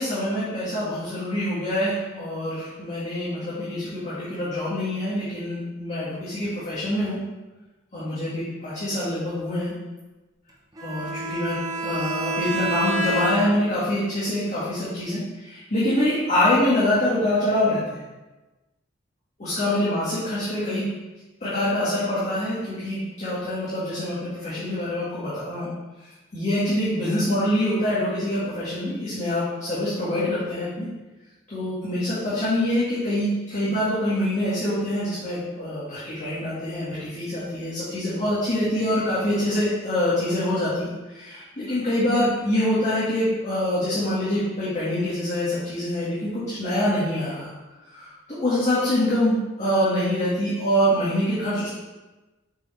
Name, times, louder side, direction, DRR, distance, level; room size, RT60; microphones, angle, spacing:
voice 1, 0.0-7.2 7.9-9.7 10.8-18.0 19.4-20.8 21.4-25.7 26.3-30.9 31.5-47.5 47.9-51.7, left 1 dB, 35° left, -10 dB, 1.8 m, -25 dB
Bowed string instrument, 10.8-13.8, right 2 dB, 20° right, 1.1 m, -28 dB
7.0 x 4.1 x 4.3 m, 1.1 s
head